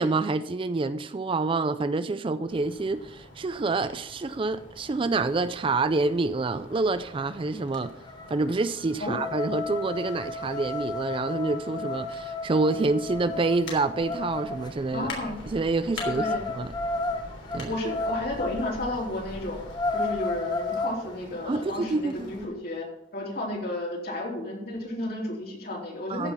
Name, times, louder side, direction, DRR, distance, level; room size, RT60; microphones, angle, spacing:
voice 1, 0.0-7.9 8.3-15.1 15.5-16.7 17.5-17.7 21.5-22.3 26.1-26.3, right 3 dB, 25° right, 0.4 m, -27 dB
sound 1, 2.5-22.4, left 2 dB, 80° left, 3.4 m, -45 dB
sound 2, 6.8-6.9 7.1-7.4 7.8-14.7 16.0-18.8 19.2-19.3 19.6-21.0, left 3 dB, 20° left, 1.0 m, -32 dB
voice 2, 14.9-15.4 16.1-16.4 17.6-19.6 19.9-22.9 23.1-26.3, left 1 dB, 55° left, 3.3 m, -32 dB
14.5 x 6.1 x 5.6 m
head